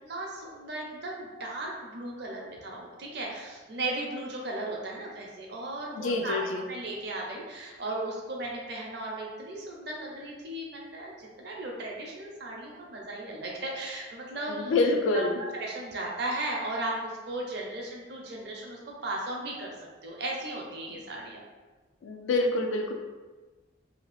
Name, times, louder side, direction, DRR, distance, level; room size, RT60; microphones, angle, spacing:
voice 1, 0.0-6.4 6.7-14.7 15.1-19.7 20.0-21.4, right 2 dB, 55° right, -2 dB, 0.6 m, -36 dB
voice 2, 6.0-6.6 14.5-15.4 20.9-21.0 22.0-22.9, left 2 dB, 80° left, 3 dB, 0.3 m, -27 dB
2.8 x 2.3 x 3.1 m, 1.3 s
head